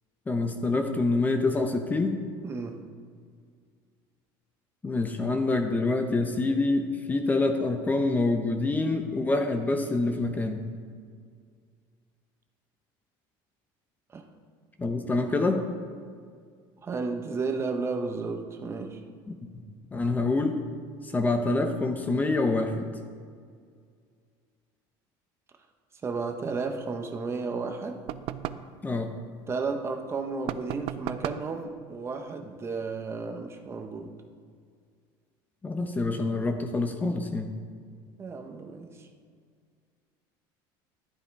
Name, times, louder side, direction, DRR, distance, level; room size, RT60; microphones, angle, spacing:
voice 1, 0.3-2.2 4.8-10.6 14.8-15.7 19.3-19.4 19.9-20.6 21.0-22.9 28.8-29.1 35.6-37.5, left 3 dB, 15° left, 5 dB, 0.9 m, -26 dB
voice 2, 2.4-2.8 14.1-14.2 16.8-19.0 26.0-28.0 29.5-34.1 38.2-39.1, right 4 dB, 25° right, 5 dB, 1.0 m, -33 dB
sound 1, 28.1-28.7 30.5-31.5, right 12 dB, 60° right, 0.5 m, -35 dB
11.5 x 10.5 x 4.7 m, 2.1 s
cardioid pair, 135°, 10 cm